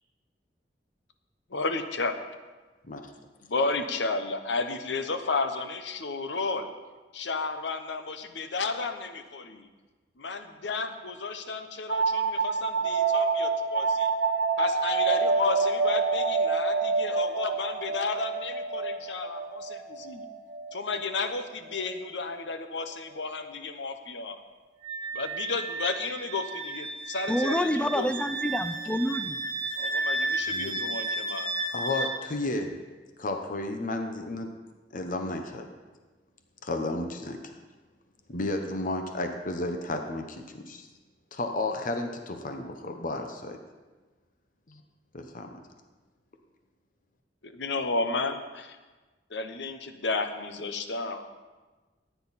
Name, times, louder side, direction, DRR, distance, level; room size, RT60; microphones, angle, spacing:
voice 1, 1.5-2.2 3.5-6.7 7.1-9.7 10.2-14.1 14.6-20.3 20.7-24.4 25.1-28.1 29.8-31.5 47.4-48.8 49.3-51.3, left 3 dB, 90° left, 8 dB, 0.9 m, -32 dB
sound 1, 11.9-21.3, right 4 dB, 80° right, 1.0 m, -27 dB
Wind instrument woodwind instrument, 24.8-32.1, right 2 dB, 30° right, 1.2 m, -33 dB
voice 2, 27.3-29.4, equal, 5° left, 9 dB, 0.5 m, -28 dB
voice 3, 30.5-30.8 31.7-32.7 33.2-34.5 34.9-35.7 36.6-37.6 38.3-40.9 41.3-43.6 44.7-44.8 45.1-45.6, left 2 dB, 50° left, 5 dB, 1.0 m, -32 dB
14.5 x 9.3 x 4.2 m, 1.3 s
head